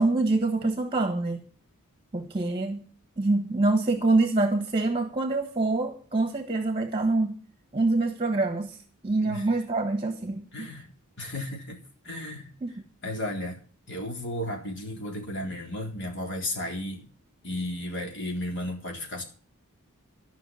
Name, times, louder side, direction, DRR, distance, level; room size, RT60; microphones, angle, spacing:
voice 1, 0.0-1.4 2.1-2.8 3.2-7.3 7.7-8.8 9.0-10.7 12.6-12.7, right 2 dB, 25° right, 1.3 m, -25 dB
voice 2, 10.5-10.9 11.2-11.8 12.0-12.5 13.0-13.6 13.9-17.1 17.4-19.2, left 1 dB, 55° left, 4.0 m, -34 dB
14.0 x 5.9 x 8.9 m
head